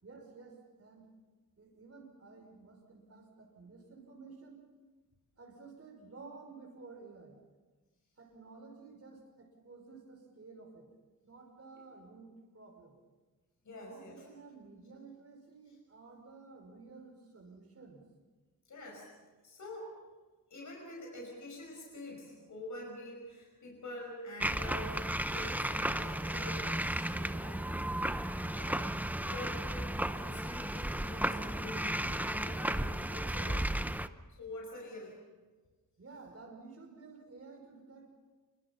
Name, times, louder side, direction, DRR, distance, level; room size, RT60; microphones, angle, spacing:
voice 1, 0.0-1.1 1.6-4.6 5.4-7.4 8.2-10.9 11.2-13.0 13.8-18.0 36.0-38.1, right 4 dB, 45° right, 2 dB, 5.2 m, -53 dB
voice 2, 13.6-14.3 15.7-15.8 18.7-19.1 19.4-20.0 20.5-27.7 28.2-33.7 34.4-35.2, left 1 dB, 60° left, -1 dB, 5.5 m, -46 dB
sound 1, 24.4-34.1, right 1 dB, 5° right, 0.7 m, -34 dB
26.5 x 24.5 x 5.8 m, 1.3 s
wide cardioid pair, 150°, 34 cm